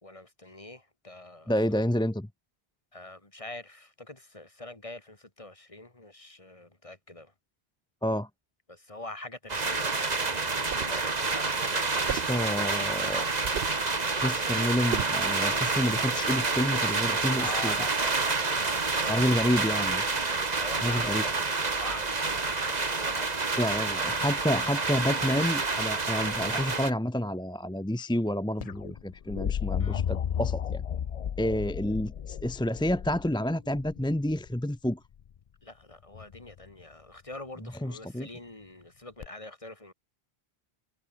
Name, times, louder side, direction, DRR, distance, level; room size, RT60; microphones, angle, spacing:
voice 1, 0.0-1.5 2.9-7.3 8.7-12.8 17.4-19.8 20.6-21.3 21.7-23.4 29.8-30.0 35.6-39.9, left 2 dB, 30° left, 2.7 m, -44 dB
voice 2, 1.5-2.3 8.0-8.3 12.1-13.3 14.2-17.7 19.1-20.0 20.8-21.2 23.6-30.8 31.4-35.0 37.8-38.3, equal, 5° left, 0.6 m, -29 dB
sound 1, 9.5-26.9, right 3 dB, 40° right, 1.7 m, -28 dB
sound 2, 10.5-11.0 12.1-12.4 13.4-13.9 14.9-15.2, right 10 dB, 65° right, 0.8 m, -35 dB
sound 3, 28.6-34.5 36.1-36.6 39.2-39.3, left 8 dB, 50° left, 0.5 m, -33 dB
omnidirectional pair, 1.0 m